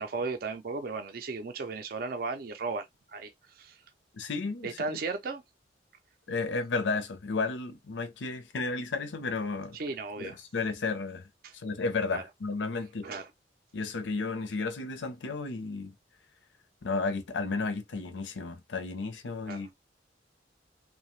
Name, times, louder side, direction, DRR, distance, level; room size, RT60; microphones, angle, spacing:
voice 1, 0.0-2.9 3.1-3.8 4.6-5.4 9.7-10.4 11.4-11.5 12.1-12.2 13.0-13.3 19.5-19.7, right 4 dB, 50° right, 0.4 m, -35 dB
voice 2, 4.1-4.8 6.3-9.8 10.2-11.3 11.5-13.1 13.7-15.9 16.8-19.7, left 3 dB, 80° left, 0.6 m, -33 dB
2.7 x 2.1 x 3.0 m
head